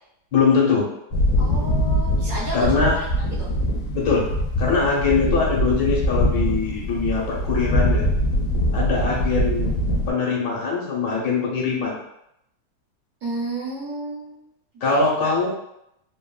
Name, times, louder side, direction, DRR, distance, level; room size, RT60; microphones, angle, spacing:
voice 1, 0.3-0.9 2.5-3.0 3.9-4.2 4.6-8.0 8.7-9.7 10.1-12.0 14.8-15.5, left 4 dB, 90° left, -4 dB, 1.5 m, -22 dB
sound 1, 1.1-10.1, equal, 70° left, 0.8 m, -23 dB
voice 2, 1.4-2.6 13.2-14.4 14.8-15.0 15.2-15.3, right 2 dB, 65° right, -8 dB, 1.2 m, -31 dB
3.5 x 2.1 x 2.3 m, 0.79 s
omnidirectional pair, 1.8 m